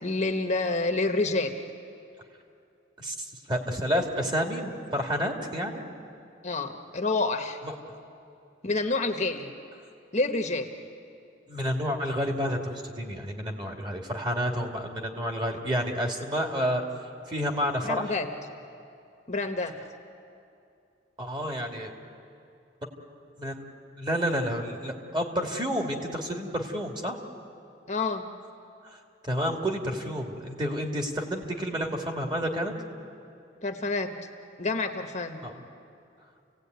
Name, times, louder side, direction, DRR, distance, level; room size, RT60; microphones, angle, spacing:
voice 1, 0.0-1.5 6.4-7.6 8.6-9.5 10.1-10.7 17.8-18.3 19.3-19.8 27.9-28.2 33.6-34.1 34.6-35.4, left 3 dB, 40° left, 5 dB, 1.2 m, -28 dB
voice 2, 3.0-5.9 7.6-7.7 11.5-16.8 17.3-18.1 21.2-21.9 23.4-23.6 24.0-27.2 28.8-29.0 29.2-32.7 35.4-35.7, equal, 25° right, 2 dB, 2.4 m, -30 dB
29.5 x 17.5 x 9.4 m, 2.6 s
head